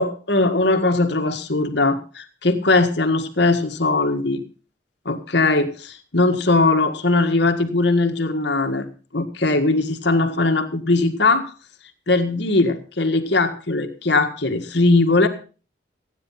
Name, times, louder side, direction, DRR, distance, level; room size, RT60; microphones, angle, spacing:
voice 1, 0.0-4.4 5.1-8.9 9.1-11.5 12.1-15.3, left 2 dB, 65° left, 7 dB, 1.9 m, -20 dB
15.0 x 10.0 x 5.7 m, 0.37 s
head